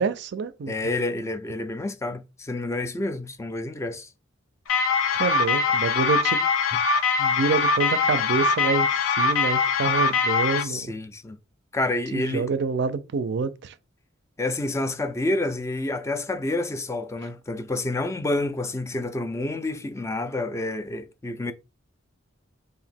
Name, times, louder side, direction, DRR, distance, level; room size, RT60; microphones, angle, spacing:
voice 1, 0.0-0.7 5.2-6.4 7.2-8.9 9.2-10.8 12.1-13.7, right 4 dB, 60° right, 0.4 m, -27 dB
voice 2, 0.7-4.1 6.7-6.8 10.6-11.4 11.7-12.5 14.4-21.5, left 2 dB, 15° left, 0.3 m, -29 dB
sound 1, 4.7-10.6, left 4 dB, 85° left, 0.5 m, -22 dB
2.9 x 2.5 x 4.2 m
head